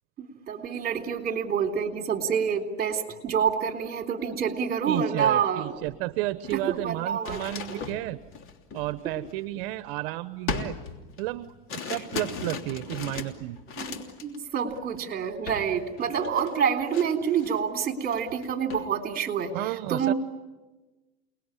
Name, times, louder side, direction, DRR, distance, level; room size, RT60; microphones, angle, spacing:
voice 1, 0.2-5.7 6.7-7.4 7.7-7.8 13.8-14.0 14.2-19.5 19.9-20.1, right 7 dB, 30° right, 5 dB, 3.5 m, -27 dB
voice 2, 4.9-8.2 8.7-10.8 11.2-13.6 19.5-20.1, right 17 dB, 75° right, 14 dB, 0.9 m, -32 dB
sound 1, 5.8-6.0 6.3-9.9 10.5-14.4 14.7-15.0 15.5-15.7 16.0-17.6 18.0-18.9, left 5 dB, 45° left, 3.1 m, -38 dB
29.5 x 20.0 x 9.9 m, 1.2 s
supercardioid pair, 125°, 30 cm